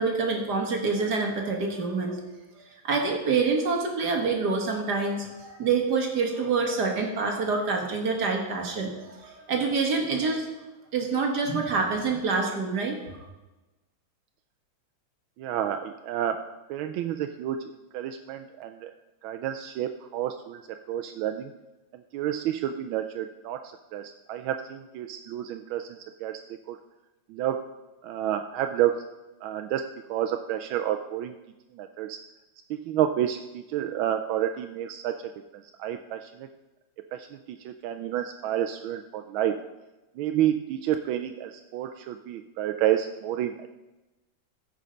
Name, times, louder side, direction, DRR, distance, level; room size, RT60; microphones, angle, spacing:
voice 1, 0.0-2.2 2.6-10.5 10.9-13.2, right 4 dB, 55° right, 2 dB, 2.0 m, -27 dB
voice 2, 15.4-18.9 19.2-21.5 21.9-26.4 26.7-26.8 27.3-27.7 28.0-29.0 29.4-31.3 31.7-32.2 32.7-35.2 35.5-36.5 37.1-39.6 40.2-43.7, right 11 dB, 85° right, 7 dB, 1.4 m, -30 dB
14.5 x 5.6 x 5.2 m, 1.1 s
omnidirectional pair, 2.2 m